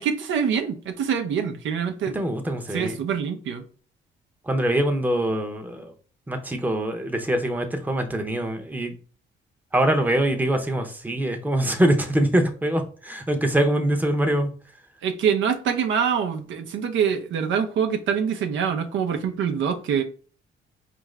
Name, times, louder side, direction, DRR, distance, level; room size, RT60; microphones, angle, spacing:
voice 1, 0.0-2.2 2.7-3.7 15.0-20.0, right 7 dB, 75° right, 0.7 m, -25 dB
voice 2, 2.1-3.0 4.5-5.9 6.3-8.9 9.7-14.5, right 1 dB, 10° right, 0.7 m, -23 dB
4.7 x 2.5 x 3.2 m
cardioid pair, 90°, 20 cm